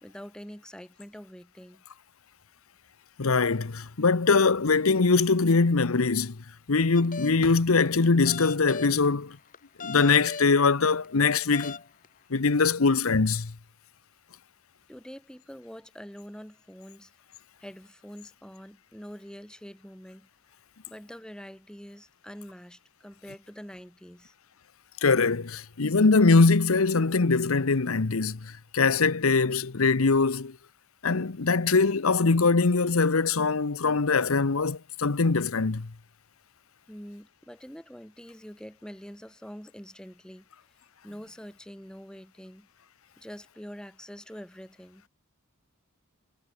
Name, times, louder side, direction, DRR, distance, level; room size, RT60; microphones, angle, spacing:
voice 1, 0.0-1.8 14.9-17.1 17.6-20.3 20.9-24.3 36.9-40.4 41.0-42.7 43.2-45.1, equal, 5° left, 3.2 m, -45 dB
voice 2, 3.2-6.4 6.7-9.4 9.8-11.8 12.3-13.5 25.0-30.6 31.0-35.9, left 4 dB, 70° left, 0.9 m, -22 dB
sound 1, 6.9-7.5 8.0-9.1 9.5-10.5 11.0-11.1 11.5-12.1, left 5 dB, 40° left, 3.7 m, -38 dB
head